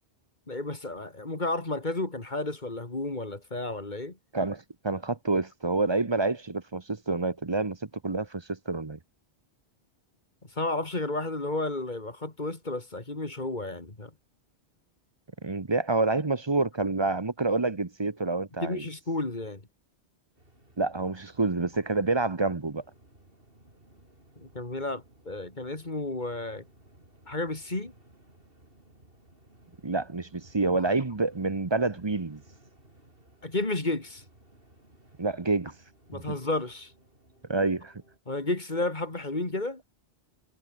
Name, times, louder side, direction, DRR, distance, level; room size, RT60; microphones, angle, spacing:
voice 1, 0.5-4.2 10.5-14.1 18.6-19.6 24.4-26.6 27.3-27.9 30.8-30.9 33.4-34.2 36.1-36.9 38.3-39.8, left 2 dB, 45° left, 3.0 m, -32 dB
voice 2, 4.3-7.8 8.0-9.0 15.4-18.8 20.8-22.8 29.8-32.4 35.2-35.7 36.1-36.3 37.5-37.9, right 3 dB, 25° right, 1.0 m, -28 dB
sound 1, 20.4-38.2, right 1 dB, 55° right, 6.4 m, -58 dB
omnidirectional pair, 1.1 m